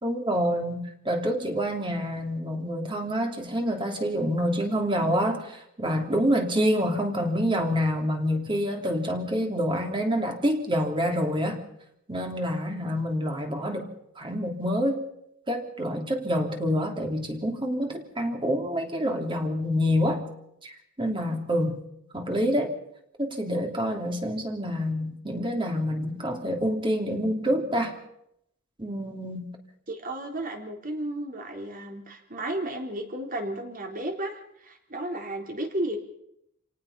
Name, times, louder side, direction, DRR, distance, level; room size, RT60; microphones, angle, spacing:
voice 1, 0.0-11.6 12.1-13.9 14.2-15.0 15.5-20.3 20.6-21.8 22.1-22.7 23.2-27.9 28.8-29.5, equal, 25° right, 3 dB, 3.0 m, -27 dB
voice 2, 29.9-36.0, right 1 dB, 40° right, 2 dB, 3.8 m, -33 dB
28.0 x 18.5 x 5.6 m, 0.78 s
head